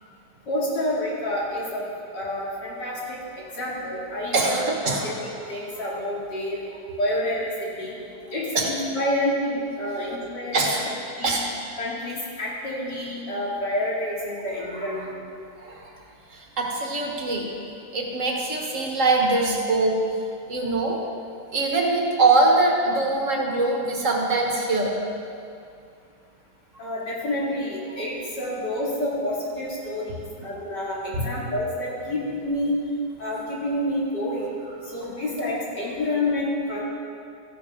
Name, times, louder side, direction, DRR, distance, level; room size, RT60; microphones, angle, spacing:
voice 1, 0.5-1.8 2.1-4.6 5.0-5.1 5.5-6.6 7.0-8.0 8.3-10.7 11.2-11.4 11.8-15.2 26.8-32.8 33.2-34.6 34.9-36.8, left 1 dB, 85° left, -6 dB, 3.3 m, -28 dB
voice 2, 4.3-5.1 8.5-8.7 10.5-10.9 11.2-11.4 14.7-15.1 15.6-15.9 16.3-17.5 17.9-20.0 20.5-21.0 21.5-24.9 31.1-31.3, right 2 dB, 50° right, 0 dB, 1.7 m, -23 dB
14.5 x 11.0 x 3.8 m, 2.4 s
omnidirectional pair, 1.8 m